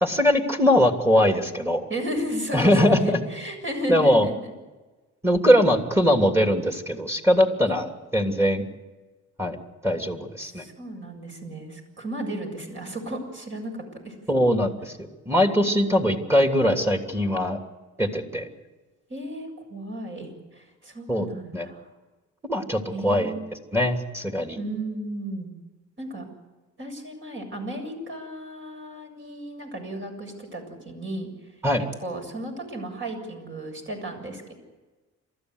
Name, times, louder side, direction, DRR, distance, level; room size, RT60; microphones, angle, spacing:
voice 1, 0.0-1.8 2.5-3.2 3.9-4.3 5.2-8.6 9.4-9.6 9.8-10.6 14.3-14.9 15.3-17.6 18.0-18.5 21.1-21.3 21.5-21.7 22.5-23.3 23.7-24.6 31.6-31.8, equal, 10° right, 4 dB, 3.0 m, -21 dB
voice 2, 1.9-4.3 7.7-7.8 10.4-14.2 19.1-21.9 22.9-23.5 24.6-25.5 26.0-26.2 26.8-31.3 32.0-34.5, right 1 dB, 40° right, 3 dB, 7.4 m, -34 dB
29.0 x 14.0 x 8.2 m, 1.2 s
cardioid pair, 90°, 30 cm